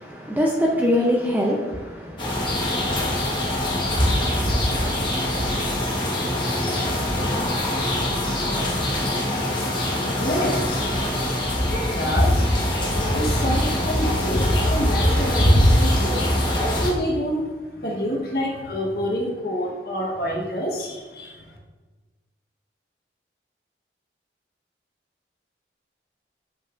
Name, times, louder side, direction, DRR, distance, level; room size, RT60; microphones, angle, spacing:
voice 1, 0.0-2.7, left 1 dB, 10° right, 0.5 m, -23 dB
sound 1, 2.2-16.9, left 1 dB, 25° left, 1.0 m, -22 dB
voice 2, 10.0-10.9 11.7-12.6 13.0-21.4, equal, 55° left, 1.1 m, -28 dB
7.5 x 5.3 x 2.5 m
head